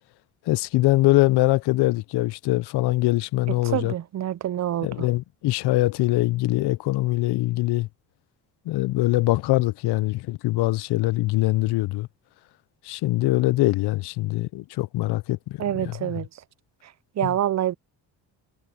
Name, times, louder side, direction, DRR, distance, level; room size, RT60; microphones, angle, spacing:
voice 1, 0.5-3.9 4.8-7.9 8.7-12.1 12.8-15.6 15.9-16.1 17.2-17.3, left 18 dB, 75° left, 0.7 m, -23 dB
voice 2, 3.6-5.1 15.6-16.3 16.8-17.7, right 11 dB, 40° right, 0.6 m, -27 dB
cardioid pair, 85°, 40 cm